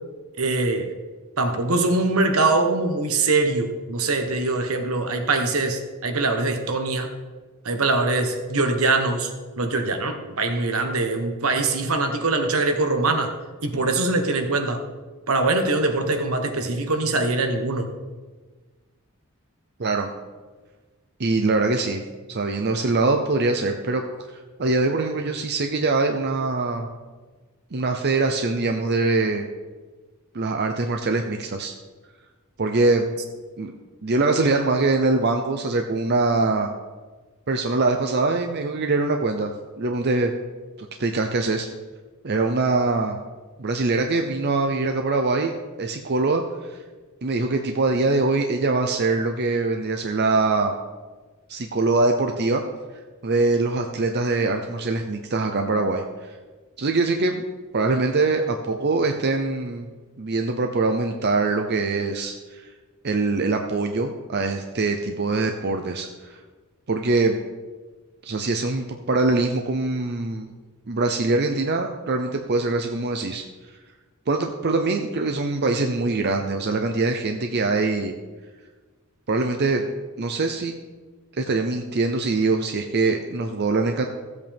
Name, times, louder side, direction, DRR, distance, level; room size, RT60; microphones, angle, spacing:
voice 1, 0.4-0.9 1.4-7.1 7.6-9.3 9.6-13.3 13.6-14.8 15.3-17.9, right 3 dB, 75° right, 6 dB, 1.3 m, -23 dB
voice 2, 21.2-22.0 22.3-24.0 24.6-26.9 27.7-29.4 30.3-31.7 32.6-33.1 33.6-33.7 34.0-36.7 37.5-39.5 39.8-40.3 41.0-41.7 42.2-43.2 43.6-46.8 47.2-50.7 51.5-52.6 53.2-56.3 56.8-57.4 57.7-59.9 60.2-62.6 63.0-66.4 66.9-67.4 68.2-70.5 70.9-73.4 74.3-78.2 79.3-79.8 80.2-80.8 81.4-84.0, right 3 dB, 50° right, 4 dB, 0.7 m, -23 dB
15.0 x 8.1 x 3.6 m, 1.3 s
head